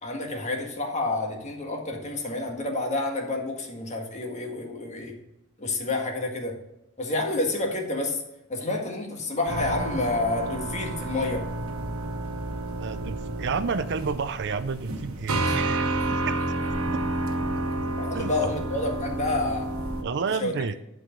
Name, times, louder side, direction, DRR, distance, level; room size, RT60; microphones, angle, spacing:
voice 1, 0.0-5.1 5.6-6.6 7.0-8.2 8.5-11.5 15.4-15.6 18.0-19.7 20.4-20.8, left 2 dB, 35° left, 2 dB, 1.7 m, -29 dB
sound 1, 9.5-20.0, right 2 dB, 90° right, 1.2 m, -30 dB
voice 2, 12.8-16.4 18.1-18.5 20.0-20.8, right 5 dB, 55° right, 12 dB, 0.5 m, -30 dB
11.5 x 4.8 x 5.2 m, 0.89 s
head